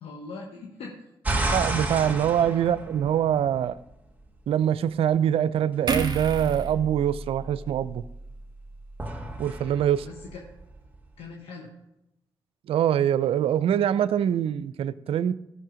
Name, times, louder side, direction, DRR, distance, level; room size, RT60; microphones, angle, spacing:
voice 1, 0.0-1.1 10.0-10.4 11.2-11.7, left 4 dB, 80° left, 0 dB, 1.2 m, -41 dB
sound 1, 1.2-3.7 9.0-11.0, right 2 dB, 15° right, 2.2 m, -31 dB
voice 2, 1.5-3.8 4.5-8.0 9.4-10.1 12.7-15.3, right 10 dB, 70° right, 17 dB, 0.4 m, -24 dB
sound 2, 5.9-9.2 9.6-9.8, right 3 dB, 45° right, 1.5 m, -33 dB
13.0 x 6.3 x 5.0 m, 0.87 s
supercardioid pair, 45°, 10 cm